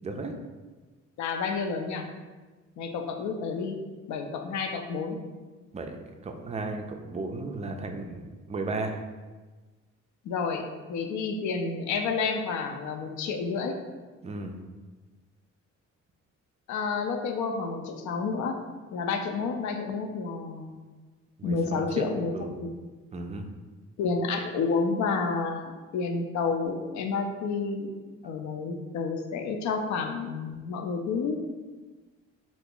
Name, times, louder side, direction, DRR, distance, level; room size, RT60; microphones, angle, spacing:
voice 1, 0.0-0.3 5.7-6.0 6.2-9.0 14.2-14.6 21.4-22.1 22.3-22.5 23.1-23.5, right 3 dB, 25° right, 5 dB, 0.3 m, -34 dB
voice 2, 1.2-2.1 2.8-3.8 4.1-5.2 10.2-13.7 16.7-18.6 18.9-20.7 21.4-22.7 24.0-27.9 28.2-31.4, left 4 dB, 70° left, 5 dB, 0.5 m, -30 dB
2.7 x 2.5 x 3.7 m, 1.3 s
cardioid pair, 90°, 30 cm